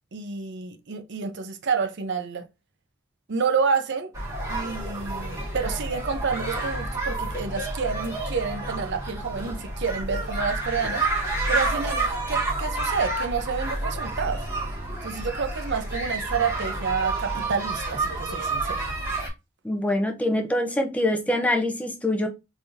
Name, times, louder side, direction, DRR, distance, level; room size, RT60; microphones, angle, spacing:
voice 1, 0.1-2.4 3.3-4.1 4.5-14.4 15.0-18.9, right 5 dB, 60° right, 0.6 m, -29 dB
sound 1, 4.1-19.3, right 2 dB, 15° right, 2.0 m, -29 dB
voice 2, 19.6-22.3, left 1 dB, 5° left, 0.6 m, -24 dB
3.5 x 3.4 x 2.7 m
head